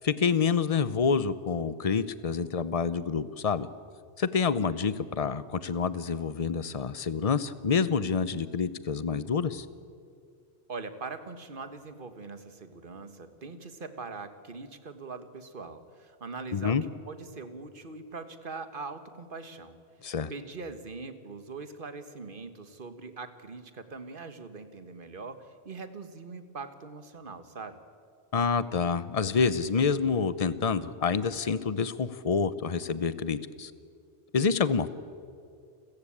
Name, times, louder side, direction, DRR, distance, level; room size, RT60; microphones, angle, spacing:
voice 1, 0.0-3.7 4.2-9.7 16.5-16.8 20.0-20.3 28.3-33.7 34.3-34.9, left 5 dB, 35° left, 16 dB, 0.8 m, -27 dB
voice 2, 10.7-19.8 20.3-27.8, right 4 dB, 55° right, 10 dB, 1.6 m, -42 dB
29.0 x 15.0 x 8.7 m, 2.3 s
omnidirectional pair, 1.1 m